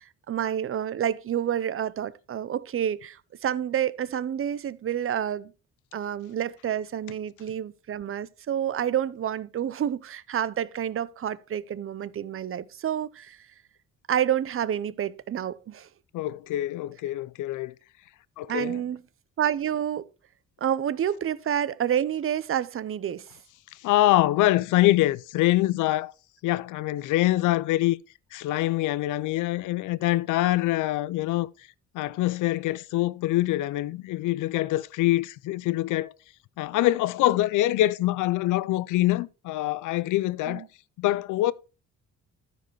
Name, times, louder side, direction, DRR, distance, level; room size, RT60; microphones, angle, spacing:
voice 1, 0.0-5.5 5.9-13.4 14.1-15.9 18.5-19.0 19.4-20.1 20.6-23.3 40.5-40.7, right 9 dB, 45° right, 0.7 m, -29 dB
voice 2, 16.1-17.7 18.4-18.8 23.8-26.1 26.4-28.0 28.3-31.5 31.9-36.1 36.6-40.7 41.0-41.5, left 16 dB, 85° left, 0.6 m, -24 dB
13.5 x 5.1 x 4.6 m
cardioid pair, 90°, 30 cm